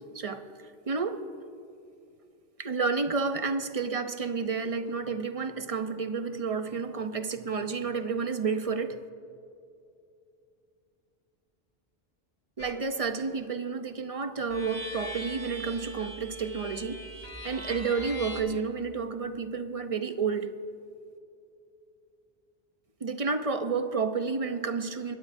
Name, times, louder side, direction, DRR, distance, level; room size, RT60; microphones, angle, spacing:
voice 1, 0.9-1.2 2.6-9.0 12.6-17.0 17.4-20.5 23.0-25.1, right 5 dB, 40° right, 8 dB, 0.7 m, -30 dB
sound 1, 12.6-12.9 14.5-18.4, equal, 20° left, 2.3 m, -41 dB
25.5 x 11.5 x 2.6 m, 2.5 s
omnidirectional pair, 1.0 m